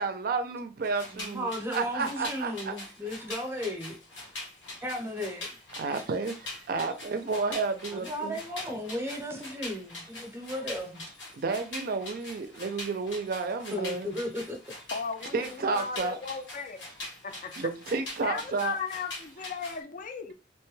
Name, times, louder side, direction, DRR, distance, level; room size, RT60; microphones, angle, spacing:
voice 1, 0.0-2.7 5.8-8.4 11.3-14.1 15.3-16.2 17.6-18.8, right 4 dB, 55° right, 0.4 m, -31 dB
sound 1, 0.8-19.8, left 2 dB, 85° left, 1.2 m, -43 dB
voice 2, 1.1-4.0 4.8-5.5 7.9-11.0 13.7-14.6, equal, 15° right, 0.6 m, -35 dB
voice 3, 14.9-16.8 17.2-17.7 18.2-20.3, left 5 dB, 45° left, 0.4 m, -36 dB
3.0 x 2.2 x 3.1 m
head